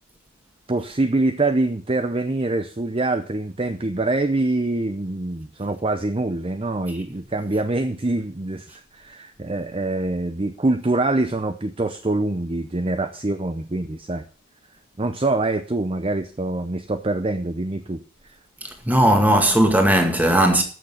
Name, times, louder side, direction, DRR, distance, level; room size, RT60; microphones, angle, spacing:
voice 1, 0.7-14.2 15.0-18.4, right 2 dB, 25° right, 0.6 m, -25 dB
voice 2, 18.6-20.6, right 1 dB, 10° right, 2.0 m, -17 dB
13.5 x 6.6 x 6.8 m
head